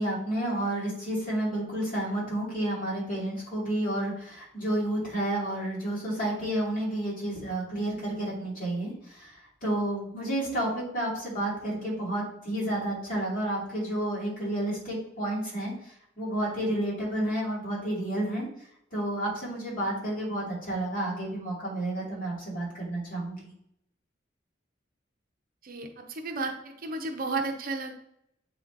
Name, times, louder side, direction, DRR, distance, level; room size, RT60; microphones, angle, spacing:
voice 1, 0.0-18.5 18.9-23.4, right 1 dB, 45° left, -5 dB, 2.5 m, -31 dB
voice 2, 25.6-27.9, right 3 dB, 50° right, 4 dB, 0.8 m, -33 dB
8.0 x 3.1 x 3.9 m, 0.75 s
head